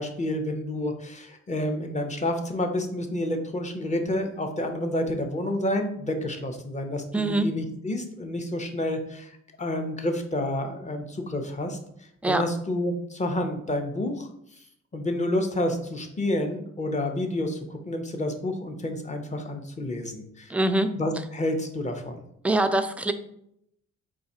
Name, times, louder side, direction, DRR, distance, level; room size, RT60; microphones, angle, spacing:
voice 1, 0.0-9.3 9.6-14.3 14.6-14.7 14.9-20.5 21.0-22.2, left 1 dB, 25° left, 5 dB, 0.7 m, -29 dB
voice 2, 7.1-7.5 12.2-12.4 20.5-21.0 22.4-23.1, right 2 dB, 5° right, 7 dB, 0.3 m, -23 dB
4.2 x 2.4 x 4.1 m, 0.74 s
cardioid pair, 80°, 31 cm